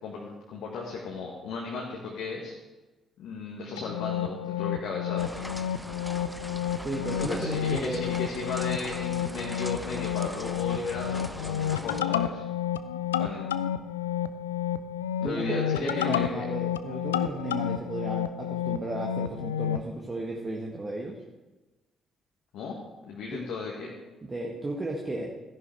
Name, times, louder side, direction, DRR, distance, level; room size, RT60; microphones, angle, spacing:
voice 1, 0.0-2.6 3.2-5.4 7.2-12.4 13.2-13.5 15.2-16.4 22.5-23.9, left 4 dB, 60° left, -2 dB, 1.5 m, -35 dB
sound 1, 3.8-19.9, left 10 dB, 75° left, 0.3 m, -31 dB
sound 2, 5.2-12.0, equal, 5° right, 0.6 m, -41 dB
voice 2, 6.8-8.0 15.2-21.2 23.3-23.4 24.2-25.3, right 2 dB, 25° right, -1 dB, 1.6 m, -34 dB
13.5 x 10.5 x 3.6 m, 1.1 s
figure-of-eight pair, 45°, 0 cm